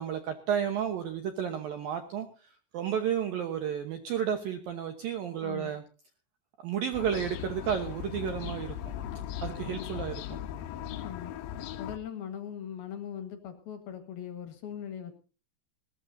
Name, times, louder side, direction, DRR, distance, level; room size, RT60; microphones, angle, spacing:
voice 1, 0.0-5.8 6.6-8.7 9.4-10.1, right 8 dB, 70° right, 7 dB, 2.2 m, -32 dB
voice 2, 5.4-5.7 9.6-10.0 11.0-11.4 11.8-15.1, left 9 dB, 60° left, 8 dB, 3.0 m, -40 dB
sound 1, 6.9-12.0, left 10 dB, 90° left, 2.0 m, -38 dB
21.0 x 17.0 x 2.7 m, 0.37 s
omnidirectional pair, 5.7 m